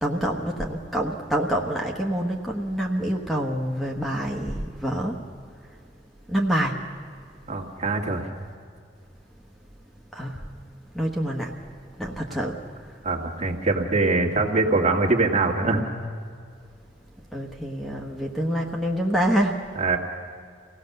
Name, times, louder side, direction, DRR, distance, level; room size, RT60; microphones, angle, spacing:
voice 1, 0.0-5.2 5.6-5.7 6.3-6.8 10.1-10.5 10.9-11.6 12.0-13.0 17.3-19.7, equal, ahead, 0 dB, 1.3 m, -27 dB
voice 2, 7.5-8.3 13.0-15.8 19.8-20.0, right 3 dB, 40° right, 1 dB, 2.0 m, -23 dB
24.5 x 17.5 x 6.7 m, 2.2 s
head